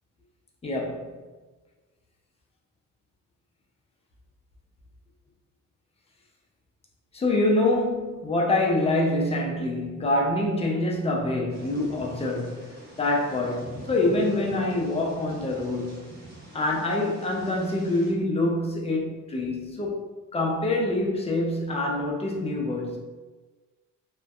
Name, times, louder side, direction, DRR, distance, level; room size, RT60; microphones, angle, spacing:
voice 1, 0.6-1.2 7.1-16.1 16.5-20.0 20.3-23.0, left 2 dB, 20° left, -1 dB, 0.5 m, -26 dB
Thunder / Rain, 11.5-18.1, right 2 dB, 30° right, 0.9 m, -45 dB
2.5 x 2.2 x 2.3 m, 1.3 s
cardioid pair, 95°, 32 cm